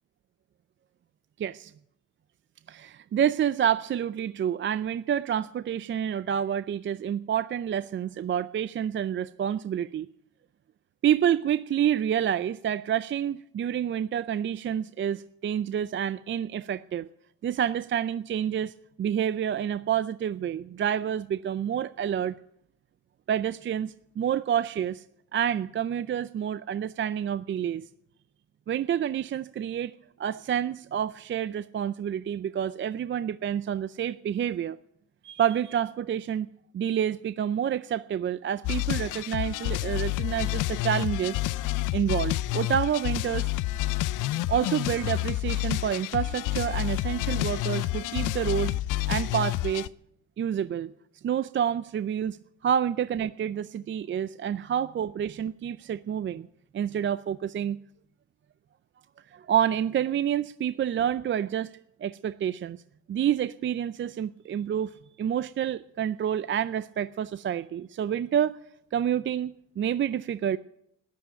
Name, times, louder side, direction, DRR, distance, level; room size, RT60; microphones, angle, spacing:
voice 1, 1.4-1.7 2.7-10.1 11.0-17.1 17.4-22.4 23.3-25.0 25.3-27.9 28.7-29.9 30.2-34.8 35.2-36.5 36.7-41.4 41.9-43.5 44.5-48.8 49.1-49.9 50.4-50.9 51.2-52.4 52.6-56.5 56.7-57.8 59.3-61.7 62.0-62.8 63.1-68.5 68.9-70.6, right 9 dB, 40° right, 15 dB, 0.5 m, -28 dB
sound 1, 38.6-49.9, left 16 dB, 85° left, 0.5 m, -29 dB
13.5 x 10.5 x 9.0 m, 0.75 s
cardioid pair, 90°, 30 cm